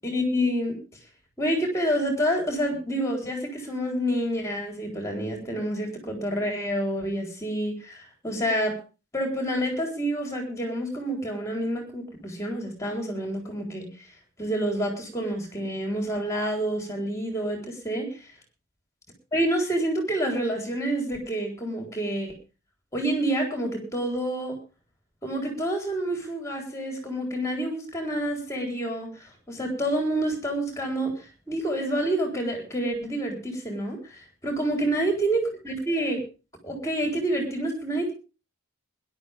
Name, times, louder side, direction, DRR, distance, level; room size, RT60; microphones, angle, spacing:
voice 1, 0.0-0.8 1.4-8.8 9.1-14.1 14.4-18.3 19.3-22.3 22.9-24.6 25.2-36.2 36.6-38.1, right 1 dB, 15° left, 2 dB, 4.0 m, -28 dB
21.0 x 11.5 x 3.5 m, 0.33 s
head